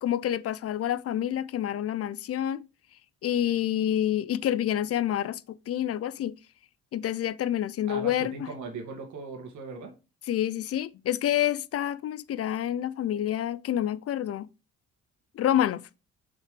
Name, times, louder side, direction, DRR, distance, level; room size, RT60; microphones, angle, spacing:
voice 1, 0.0-2.6 3.2-6.3 6.9-8.5 10.3-14.5 15.3-15.9, left 11 dB, 50° left, 0.5 m, -28 dB
voice 2, 7.9-9.9, right 4 dB, 75° right, 2.0 m, -38 dB
6.4 x 5.9 x 3.3 m
cardioid pair, 90°, 30 cm